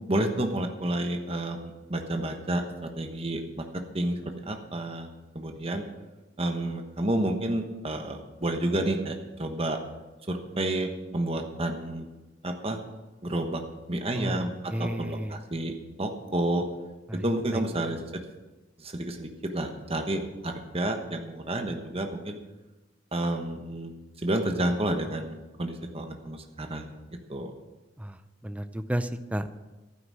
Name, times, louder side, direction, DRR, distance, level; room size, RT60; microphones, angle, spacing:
voice 1, 0.1-3.6 3.9-5.1 5.3-5.8 6.4-9.8 10.3-12.1 12.4-12.8 13.2-13.6 13.9-16.6 17.2-18.0 18.8-22.4 23.1-23.9 24.2-26.9 27.3-27.5, right 1 dB, 30° right, 5 dB, 1.2 m, -30 dB
voice 2, 14.2-15.3 17.1-17.2 17.5-17.6 28.0-28.2 28.4-29.6, equal, 5° right, 11 dB, 0.6 m, -32 dB
12.0 x 9.8 x 6.3 m, 1.1 s
head